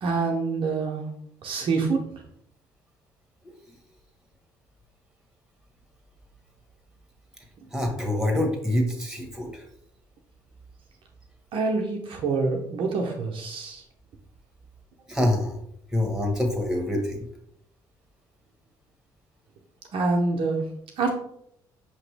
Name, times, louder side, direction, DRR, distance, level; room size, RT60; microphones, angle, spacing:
voice 1, 0.0-1.1 1.4-2.0 11.5-13.8 19.9-20.6 21.0-21.1, right 4 dB, 60° right, 1 dB, 0.8 m, -26 dB
voice 2, 7.7-9.6 15.1-15.6 15.9-17.3, left 1 dB, 5° right, 2 dB, 1.5 m, -26 dB
5.4 x 2.9 x 3.3 m, 0.71 s
hypercardioid pair, 60°, 10 cm